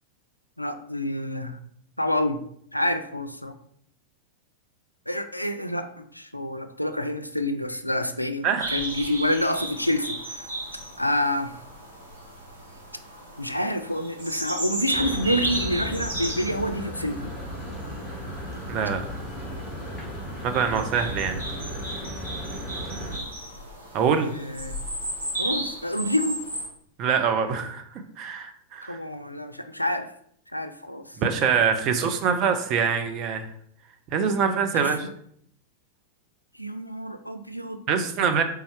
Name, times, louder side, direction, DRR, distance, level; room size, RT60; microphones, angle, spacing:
voice 1, 0.6-1.6 2.0-2.4 2.7-3.5 5.1-8.5 8.7-10.5 11.0-11.5 13.4-17.3 24.3-24.8 25.4-26.4 28.8-30.1 30.5-31.2 34.7-35.1 36.6-37.8, left 1 dB, 90° left, 9 dB, 0.3 m, -28 dB
voice 2, 8.4-8.8 18.7-19.1 20.4-21.4 23.9-24.3 27.0-29.0 31.2-33.5 34.1-35.1 37.9-38.4, right 6 dB, 40° right, 7 dB, 0.5 m, -24 dB
sound 1, 8.6-26.7, right 1 dB, 75° right, 1.1 m, -35 dB
sound 2, 14.9-23.2, equal, ahead, 1.4 m, -35 dB
4.1 x 3.3 x 3.3 m, 0.68 s
figure-of-eight pair, 90°, 0 cm